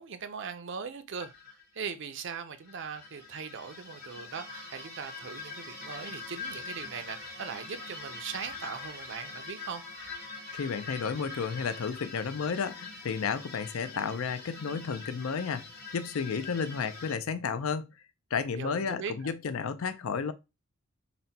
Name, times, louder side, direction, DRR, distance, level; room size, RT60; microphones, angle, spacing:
voice 1, 0.0-9.8 16.3-16.5 18.5-19.3, right 6 dB, 55° right, 0.5 m, -40 dB
sound 1, 1.2-1.6 2.5-17.1, left 4 dB, 45° left, 1.1 m, -44 dB
sound 2, 4.3-11.9, right 4 dB, 30° left, 0.6 m, -51 dB
voice 2, 10.5-15.7 15.9-17.9 18.3-20.3, left 6 dB, 70° left, 0.4 m, -32 dB
4.0 x 2.2 x 4.0 m
head